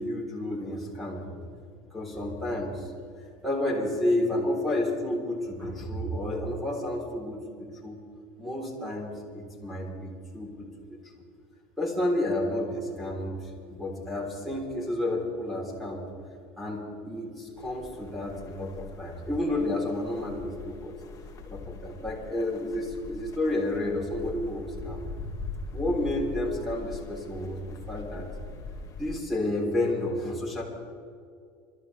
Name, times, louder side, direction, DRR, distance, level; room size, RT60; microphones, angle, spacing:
voice 1, 0.0-1.4 1.9-2.9 3.4-8.0 8.4-11.0 11.8-13.4 13.7-16.1 16.6-20.9 21.4-25.1 25.7-27.6 27.9-28.3 29.0-30.6, left 1 dB, ahead, -5 dB, 3.8 m, -31 dB
sound 1, 17.6-29.2, left 3 dB, 25° left, 1.9 m, -42 dB
25.5 x 13.0 x 3.5 m, 2.3 s
supercardioid pair, 130°, 13 cm